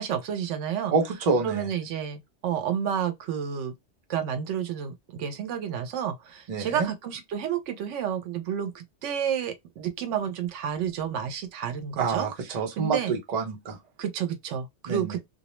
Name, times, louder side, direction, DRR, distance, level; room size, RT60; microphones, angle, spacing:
voice 1, 0.0-0.9 1.4-3.7 4.1-12.3 12.8-13.2 14.0-15.2, right 8 dB, 85° right, 0.9 m, -30 dB
voice 2, 0.9-1.7 6.5-6.9 12.0-13.8 14.9-15.2, right 4 dB, 40° right, 0.7 m, -27 dB
2.2 x 2.1 x 2.9 m
omnidirectional pair, 1.2 m